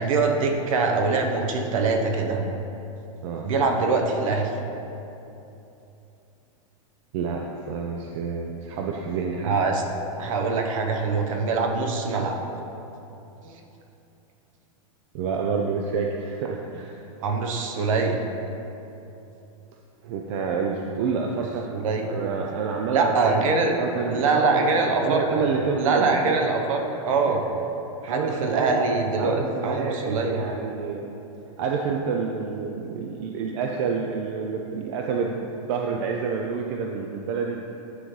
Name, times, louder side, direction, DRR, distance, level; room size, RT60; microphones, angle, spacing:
voice 1, 0.0-2.4 3.4-4.5 9.5-9.8 10.2-12.4 13.4-13.5 17.2-18.2 21.7-22.0 22.9-23.7 24.1-25.5 25.8-27.4 28.0-30.4, right 4 dB, 70° right, 3 dB, 0.9 m, -23 dB
voice 2, 7.1-9.6 15.1-17.0 20.0-21.7 22.1-23.5 23.7-26.4 27.3-27.4 28.1-28.9 29.2-31.1 31.6-37.6, right 5 dB, 55° right, 1 dB, 0.5 m, -28 dB
9.5 x 3.7 x 3.2 m, 2.9 s
hypercardioid pair, 135°, 18 cm